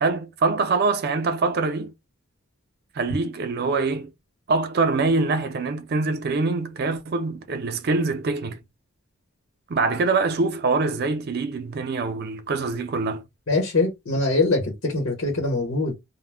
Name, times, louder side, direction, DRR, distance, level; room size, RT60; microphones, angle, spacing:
voice 1, 0.0-1.9 2.9-4.1 4.5-8.6 9.7-13.2, right 3 dB, 50° right, 0.4 m, -24 dB
voice 2, 13.5-15.9, left 2 dB, 85° left, 0.9 m, -23 dB
2.1 x 2.0 x 3.2 m
head